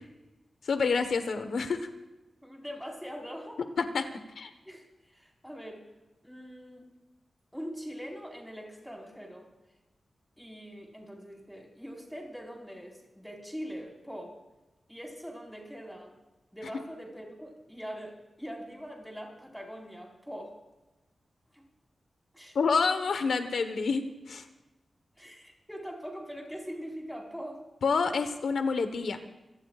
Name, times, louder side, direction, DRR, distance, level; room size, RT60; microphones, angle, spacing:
voice 1, 0.6-1.9 3.8-4.0 4.4-4.5 22.5-24.4 27.8-29.2, left 4 dB, 85° left, 8 dB, 1.2 m, -28 dB
voice 2, 2.4-3.6 4.7-4.9 5.1-5.8 6.2-6.9 7.5-9.5 10.4-14.3 14.9-16.1 16.5-20.6 21.5-21.6 22.3-22.6 25.2-27.6, equal, ahead, -1 dB, 4.6 m, -42 dB
26.5 x 18.5 x 2.5 m, 1.0 s
wide cardioid pair, 120°, 0 cm